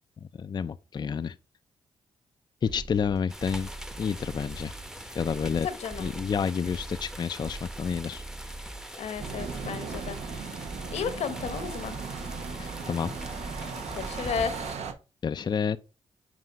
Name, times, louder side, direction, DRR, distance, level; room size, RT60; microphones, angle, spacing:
voice 1, 0.2-1.4 2.6-3.7 4.0-4.7 5.1-5.7 6.0-8.2 12.6-13.2 15.2-15.8, left 6 dB, 40° left, 0.4 m, -29 dB
sound 1, 2.7-14.7, right 2 dB, 30° right, 1.1 m, -43 dB
sound 2, 3.3-14.8, equal, 5° right, 0.9 m, -43 dB
voice 2, 5.6-6.1 9.0-10.2 10.9-11.9 14.0-14.6, left 7 dB, 75° left, 0.9 m, -33 dB
sound 3, 9.2-14.9, right 5 dB, 80° right, 0.9 m, -38 dB
7.6 x 2.7 x 5.0 m
cardioid pair, 60°, 11 cm